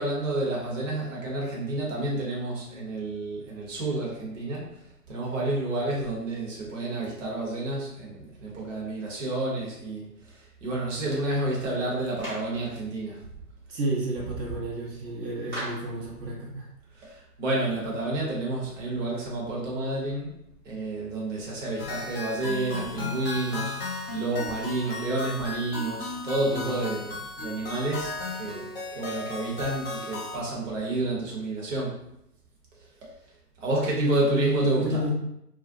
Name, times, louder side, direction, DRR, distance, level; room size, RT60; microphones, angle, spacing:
voice 1, 0.0-13.2 16.9-20.4 20.6-32.0 33.6-35.0, right 2 dB, 50° right, -4 dB, 0.9 m, -30 dB
Clapping, 12.2-12.6 15.5-15.9, right 1 dB, 10° right, 0.7 m, -36 dB
voice 2, 13.7-16.7 26.5-27.0 34.0-35.1, right 1 dB, 75° right, -4 dB, 0.9 m, -30 dB
sound 1, 21.8-30.4, left 3 dB, 40° left, 0.8 m, -35 dB
2.4 x 2.1 x 2.6 m, 0.79 s
figure-of-eight pair, 135°, 49 cm